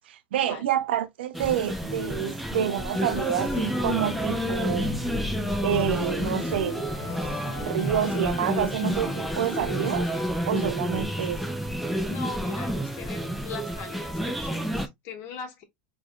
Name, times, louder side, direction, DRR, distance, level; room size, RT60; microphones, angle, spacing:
voice 1, 0.1-4.9 5.6-6.8 7.6-10.1 10.5-11.4, right 10 dB, 85° right, 0.8 m, -28 dB
sound 1, 1.3-14.9, equal, ahead, 0.8 m, -30 dB
Organ, 2.9-10.3, left 5 dB, 30° left, 1.2 m, -36 dB
voice 2, 11.2-11.6 12.0-15.6, left 6 dB, 55° left, 1.6 m, -40 dB
4.2 x 3.5 x 2.4 m
supercardioid pair, 120°, 6 cm